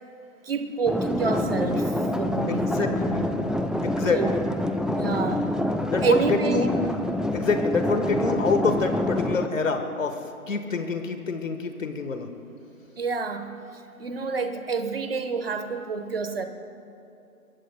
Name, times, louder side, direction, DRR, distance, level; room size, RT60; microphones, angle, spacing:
voice 1, 0.4-3.4 4.1-4.4 4.9-5.5 6.0-6.7 13.0-16.4, right 5 dB, 40° right, 8 dB, 1.1 m, -28 dB
sound 1, 0.8-9.5, left 1 dB, ahead, 0.3 m, -27 dB
voice 2, 2.5-3.2 3.8-4.4 5.9-6.7 7.3-12.3, left 4 dB, 60° left, 7 dB, 1.4 m, -26 dB
26.0 x 22.0 x 2.2 m, 2.7 s
figure-of-eight pair, 150°, 44 cm